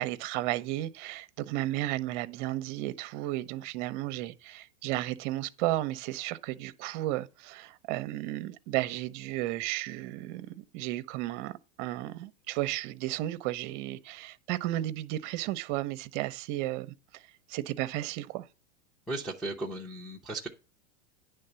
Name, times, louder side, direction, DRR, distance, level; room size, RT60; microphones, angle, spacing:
voice 1, 0.0-17.2 17.5-18.5, right 16 dB, 40° right, 0.6 m, -33 dB
voice 2, 19.1-20.5, right 2 dB, ahead, 0.5 m, -36 dB
9.8 x 3.4 x 6.8 m
supercardioid pair, 155°, 36 cm